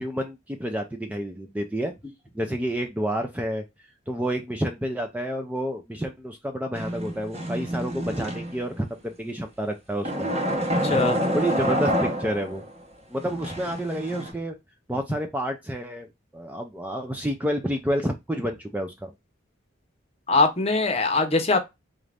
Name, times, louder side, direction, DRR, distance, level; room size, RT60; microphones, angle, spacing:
voice 1, 0.0-1.9 2.3-3.6 4.1-10.3 10.9-12.6 13.1-14.6 14.9-16.1 16.3-19.1, equal, 10° right, 0.3 m, -29 dB
sound 1, 6.7-8.8 10.0-12.7 13.2-14.3, equal, 30° right, 0.9 m, -28 dB
voice 2, 10.8-11.2 20.3-21.6, left 3 dB, 30° left, 0.7 m, -22 dB
4.0 x 2.5 x 3.3 m
head